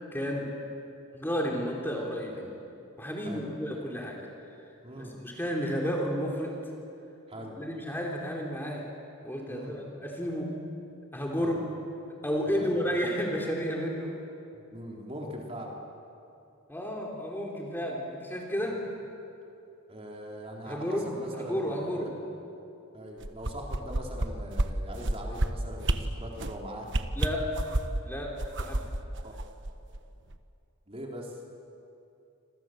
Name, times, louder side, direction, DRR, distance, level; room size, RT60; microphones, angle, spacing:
voice 1, 0.1-0.5 1.1-2.5 3.0-4.2 5.0-6.6 7.6-8.9 9.2-10.6 11.1-11.6 12.2-14.2 16.7-18.9 20.7-22.1 27.2-27.6 28.0-28.9, equal, 10° left, -1 dB, 3.5 m, -32 dB
voice 2, 14.7-15.7 19.9-22.1 22.9-26.9 29.2-29.3 30.9-31.4, equal, 25° right, -1 dB, 3.8 m, -41 dB
sound 1, 23.2-24.3 24.6-24.7 25.0-25.5 25.8-26.0 26.4-26.6 26.9-28.0 28.4-30.0 30.3-30.4, right 1 dB, 55° right, 1.3 m, -28 dB
27.5 x 27.0 x 7.8 m, 2.7 s
head